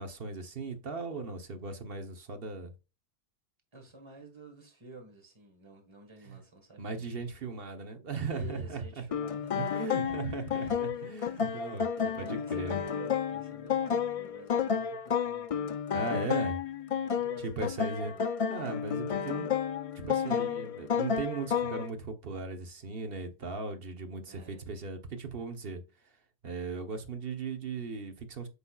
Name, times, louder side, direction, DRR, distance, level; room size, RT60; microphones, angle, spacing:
voice 1, 0.0-2.7 6.3-6.4 6.8-9.0 9.5-11.9 12.2-12.8 15.9-16.6 17.4-18.1 18.5-19.5 20.0-25.8 26.4-28.5, right 4 dB, 60° right, 1.2 m, -37 dB
voice 2, 3.7-7.2 8.3-10.2 10.5-11.0 11.3-15.7 17.0-18.3 24.3-24.7, right 3 dB, 25° right, 1.6 m, -51 dB
sound 1, 9.1-21.9, left 7 dB, 55° left, 0.4 m, -31 dB
8.2 x 5.3 x 2.3 m
omnidirectional pair, 1.1 m